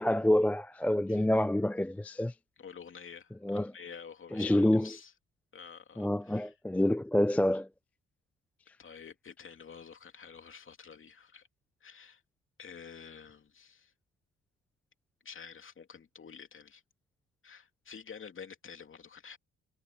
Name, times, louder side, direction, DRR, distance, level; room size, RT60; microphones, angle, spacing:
voice 1, 0.0-2.3 3.4-3.7 4.3-5.0 6.0-7.7, left 1 dB, 5° left, 0.4 m, -27 dB
voice 2, 2.6-5.1 5.5-6.5 8.8-11.5 11.8-12.2 12.6-13.9 15.2-16.8 17.4-19.4, left 6 dB, 40° left, 2.8 m, -49 dB
cardioid pair, 90°, 30 cm